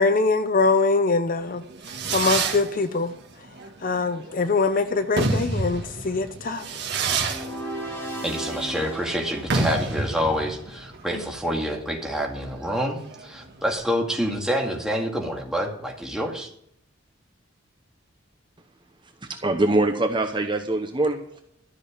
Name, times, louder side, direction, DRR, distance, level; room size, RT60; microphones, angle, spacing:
voice 1, 0.0-1.6 2.1-3.1 3.8-6.6, left 3 dB, 45° left, 0.7 m, -23 dB
Fireworks, 1.5-13.7, right 3 dB, 55° right, 1.9 m, -29 dB
sound 1, 7.3-10.5, right 1 dB, 10° left, 3.4 m, -36 dB
voice 2, 8.2-16.5, equal, 5° right, 2.2 m, -27 dB
voice 3, 19.3-21.4, right 2 dB, 25° right, 1.0 m, -23 dB
13.5 x 6.4 x 8.6 m
head